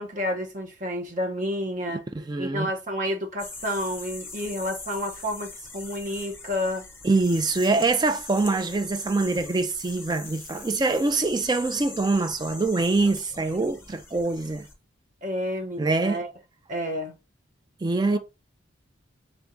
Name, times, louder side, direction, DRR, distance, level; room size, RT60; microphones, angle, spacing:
voice 1, 0.0-2.0 2.4-6.8 15.2-16.3 16.7-17.1 18.1-18.2, equal, 40° right, 1.1 m, -30 dB
voice 2, 2.1-2.7 7.0-14.7 15.8-16.2 17.8-18.2, right 3 dB, 20° right, 0.3 m, -24 dB
sound 1, 3.4-14.7, left 3 dB, 10° left, 0.8 m, -42 dB
3.5 x 3.5 x 3.8 m
head